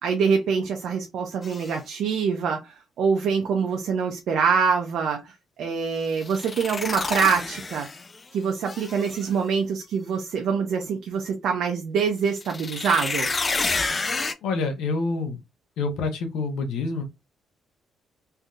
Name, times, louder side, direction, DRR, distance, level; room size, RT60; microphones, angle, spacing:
voice 1, 0.0-7.9 8.3-13.3, right 6 dB, 75° right, 0.6 m, -25 dB
sound 1, 1.4-1.7 6.1-8.2 8.7-9.3 12.3-14.3, left 3 dB, 30° left, 0.4 m, -29 dB
voice 2, 14.4-15.4 15.8-17.0, left 3 dB, 85° left, 0.8 m, -27 dB
3.3 x 2.7 x 2.3 m
cardioid pair, 90°, 0 cm